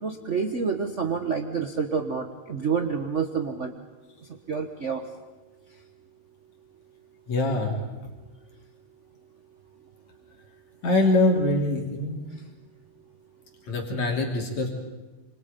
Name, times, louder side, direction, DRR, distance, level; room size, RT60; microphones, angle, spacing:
voice 1, 0.0-3.8 4.5-5.1, right 5 dB, 50° right, 5 dB, 0.8 m, -28 dB
voice 2, 7.3-7.7 10.8-12.2 13.7-14.7, left 2 dB, 70° left, 0 dB, 4.4 m, -23 dB
27.5 x 27.0 x 5.3 m, 1.2 s
omnidirectional pair, 3.3 m